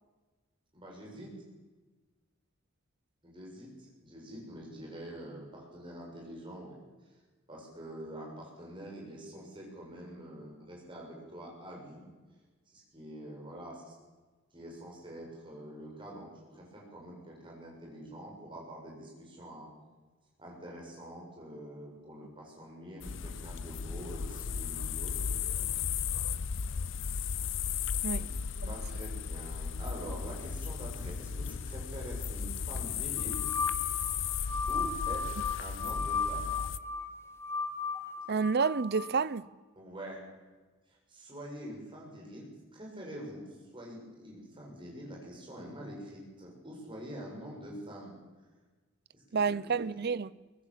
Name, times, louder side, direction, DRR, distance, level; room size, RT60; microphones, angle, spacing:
voice 1, 0.7-1.3 3.2-6.8 7.5-12.0 12.7-13.9 14.5-19.7 20.4-25.9 28.1-28.3 28.7-33.5 34.7-36.6 39.8-40.2 40.9-43.5 43.7-48.1 49.1-49.9, equal, 25° right, 7.2 m, -45 dB
sound 1, 23.0-36.8, left 7 dB, 60° left, 0.6 m, -35 dB
sound 2, 33.2-39.2, left 5 dB, 10° left, 1.0 m, -35 dB
voice 2, 38.3-39.5 49.3-50.3, right 5 dB, 50° right, 0.6 m, -29 dB
22.5 x 19.5 x 7.5 m
head